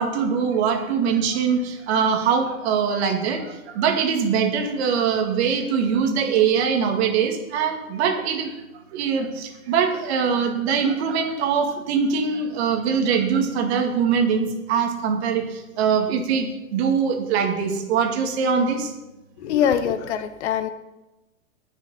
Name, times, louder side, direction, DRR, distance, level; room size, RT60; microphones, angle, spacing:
voice 1, 0.0-8.5 8.9-18.9, right 6 dB, 50° right, 4 dB, 2.1 m, -22 dB
voice 2, 19.4-20.7, left 9 dB, 50° left, 11 dB, 1.0 m, -23 dB
19.5 x 6.5 x 4.2 m, 1.0 s
hypercardioid pair, 150°, 42 cm